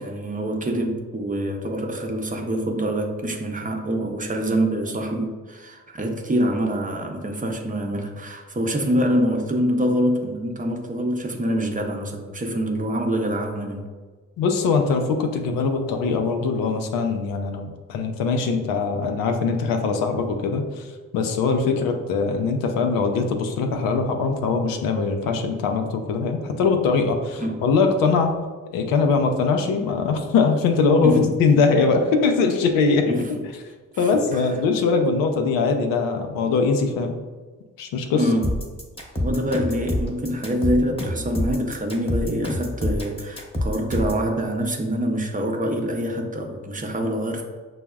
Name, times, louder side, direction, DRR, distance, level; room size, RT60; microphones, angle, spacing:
voice 1, 0.0-13.8 25.2-25.4 27.4-27.6 31.0-31.4 33.1-33.5 33.9-34.4 38.1-38.6 39.2-47.4, equal, 25° right, 2 dB, 0.6 m, -25 dB
voice 2, 14.4-20.9 21.1-28.3 28.7-33.2 34.0-37.1 37.8-38.3, left 4 dB, 85° left, 5 dB, 0.5 m, -21 dB
sound 1, 38.4-44.3, left 1 dB, 15° left, 1.0 m, -26 dB
6.0 x 2.0 x 2.3 m, 1.4 s
supercardioid pair, 55°, 33 cm